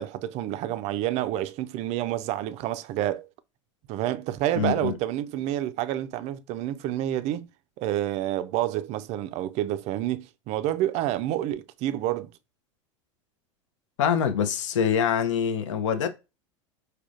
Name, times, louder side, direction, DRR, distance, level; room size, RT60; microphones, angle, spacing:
voice 1, 0.0-3.3 3.9-7.5 7.8-12.3, right 13 dB, 45° right, 0.4 m, -28 dB
voice 2, 4.6-5.0 14.0-16.1, left 7 dB, 70° left, 0.6 m, -24 dB
4.8 x 2.3 x 2.5 m
hypercardioid pair, 85°, 16 cm